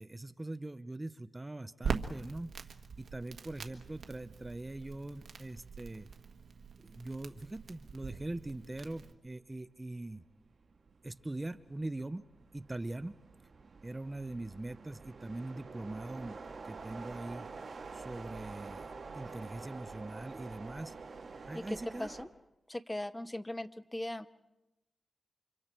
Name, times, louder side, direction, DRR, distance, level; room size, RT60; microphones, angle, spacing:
voice 1, 0.0-6.1 6.8-10.2 11.0-12.2 12.5-13.2 13.8-16.4 16.6-17.5 17.9-20.9 21.5-22.2, right 2 dB, 20° right, 12 dB, 0.7 m, -42 dB
Crackle, 1.8-9.1, right 5 dB, 85° right, 1.4 m, -43 dB
sound 1, 7.5-7.6 7.9-22.3, right 4 dB, 55° right, 2.2 m, -48 dB
voice 2, 21.5-22.3 22.7-24.3, left 1 dB, 15° left, 12 dB, 0.8 m, -39 dB
29.5 x 26.0 x 4.5 m, 0.94 s
wide cardioid pair, 100°, 0 cm